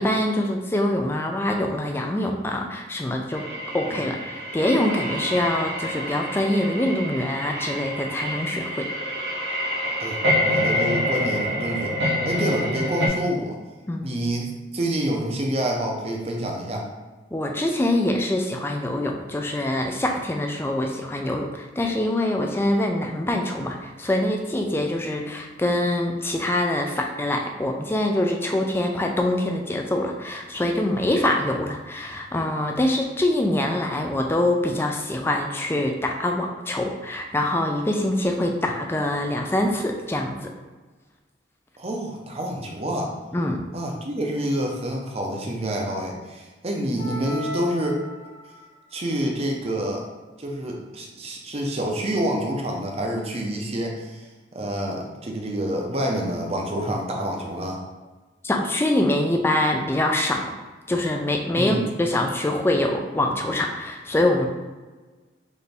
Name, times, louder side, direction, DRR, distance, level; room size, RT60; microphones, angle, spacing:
voice 1, 0.0-3.5 3.7-8.9 13.9-14.2 17.3-40.5 43.3-43.6 58.4-60.5 60.9-64.5, left 1 dB, 10° left, 2 dB, 0.3 m, -24 dB
sound 1, 3.3-13.1, equal, 65° right, 0.7 m, -27 dB
voice 2, 10.0-12.0 12.3-13.6 14.0-16.9 41.8-43.1 43.7-48.0 48.9-50.0 50.4-54.3 54.5-57.8 61.5-61.8, right 1 dB, 35° right, 0 dB, 0.5 m, -27 dB
sound 2, 47.0-48.6, left 1 dB, 85° left, 1.1 m, -35 dB
4.1 x 2.6 x 3.4 m, 1.3 s
head